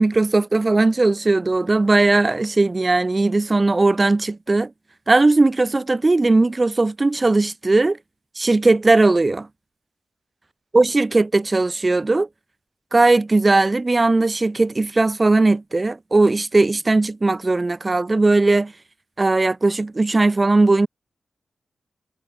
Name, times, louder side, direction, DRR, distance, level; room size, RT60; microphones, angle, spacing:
voice 1, 0.0-4.7 5.1-8.0 8.4-9.5 10.7-12.3 12.9-18.7 19.2-20.9, right 2 dB, 35° right, 4.4 m, -18 dB
cardioid pair, 55°, 0 cm